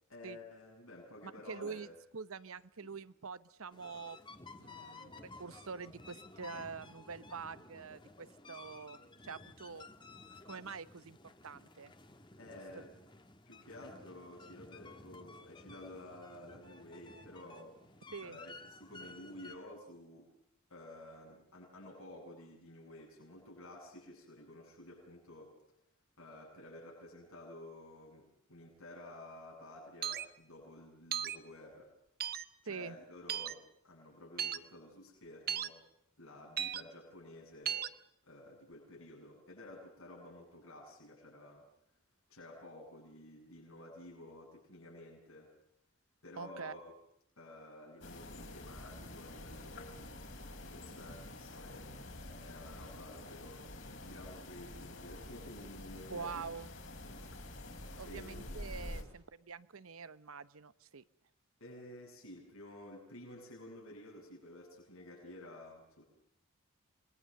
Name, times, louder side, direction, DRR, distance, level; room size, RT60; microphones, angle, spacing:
voice 1, 0.1-1.9 2.8-3.0 12.4-12.9 13.4-17.8 18.2-20.3 20.7-25.6 26.2-31.9 32.6-35.8 36.2-37.9 38.2-41.7 42.3-45.5 46.2-46.9 47.4-53.7 54.0-56.4 58.0-58.9 61.6-66.0, left 1 dB, 75° left, -2 dB, 7.8 m, -52 dB
voice 2, 1.2-1.9 2.1-4.2 4.6-9.9 10.4-11.9 18.1-18.4 32.7-33.0 46.4-46.7 56.1-56.7 58.0-61.0, right 5 dB, 80° right, 16 dB, 0.9 m, -45 dB
sound 1, 3.7-19.5, left 3 dB, 20° left, 1.4 m, -54 dB
sound 2, 30.0-30.3 31.1-31.4 32.2-32.4 33.3-33.5 34.4-34.6 35.5-35.7 36.6-36.8 37.7-37.9, right 9 dB, 45° right, 0.9 m, -35 dB
sound 3, 48.0-59.0, left 1 dB, 60° left, 4.5 m, -48 dB
28.0 x 21.5 x 6.7 m, 0.73 s
head